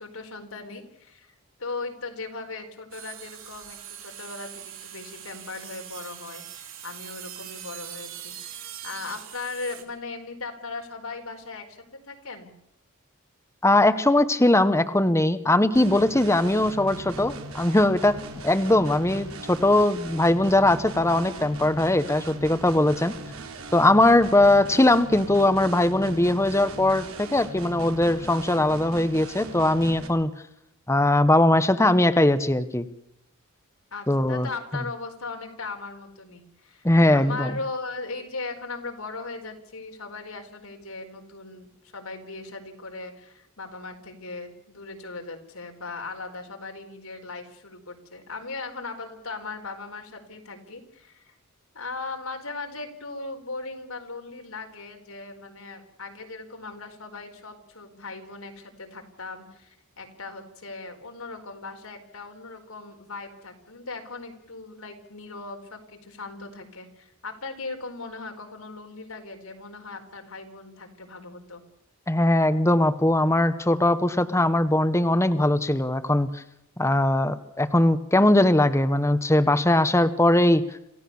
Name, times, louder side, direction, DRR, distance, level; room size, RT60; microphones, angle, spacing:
voice 1, 0.0-1.3 1.6-12.5 33.9-51.3 51.7-71.6, left 3 dB, 90° left, 4 dB, 4.5 m, -38 dB
sound 1, 2.9-9.8, right 11 dB, 65° right, 5.1 m, -42 dB
voice 2, 13.6-23.1 23.7-30.3 30.9-32.9 34.1-34.5 36.8-37.5 72.1-76.4 76.8-80.6, left 1 dB, 15° left, 10 dB, 1.0 m, -20 dB
sound 2, 15.7-30.1, right 2 dB, 80° right, 3.7 m, -39 dB
27.5 x 16.0 x 7.1 m, 0.79 s
head